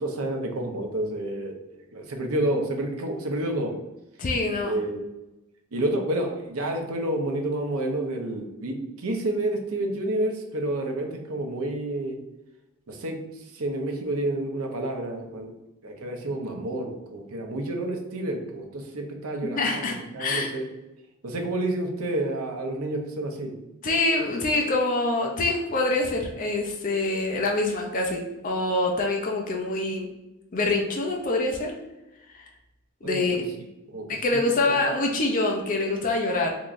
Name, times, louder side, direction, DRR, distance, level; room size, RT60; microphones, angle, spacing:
voice 1, 0.0-1.5 1.9-3.7 4.6-5.0 5.7-12.2 12.9-15.5 15.8-20.6 21.2-23.5 33.0-33.4 33.9-34.4 34.7-34.8, right 1 dB, 80° right, 3 dB, 0.7 m, -29 dB
voice 2, 4.2-4.8 19.6-20.5 23.8-30.1 30.5-31.7 32.3-32.5 33.0-33.4 34.1-36.5, left 2 dB, 40° left, 1 dB, 0.4 m, -25 dB
3.6 x 3.0 x 2.5 m, 0.96 s
head